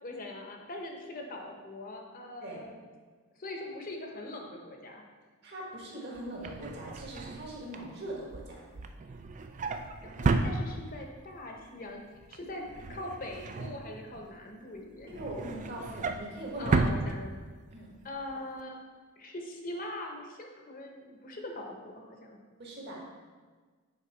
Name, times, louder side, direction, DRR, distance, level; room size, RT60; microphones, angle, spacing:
voice 1, 0.0-2.8 3.4-5.0 10.0-12.0 12.3-12.6 12.9-15.1 16.6-17.4 18.0-18.8 19.2-22.4, left 1 dB, 40° left, 1 dB, 0.9 m, -42 dB
voice 2, 5.4-8.6 15.1-16.8 17.7-17.9 22.6-23.0, right 1 dB, 50° right, -3 dB, 1.7 m, -41 dB
Drawer open or close, 6.2-11.2 11.6-11.9 12.1-14.4 14.8-17.8 18.1-18.3 18.6-18.7, right 3 dB, 35° right, 0.3 m, -33 dB
6.6 x 4.6 x 4.4 m, 1.4 s
head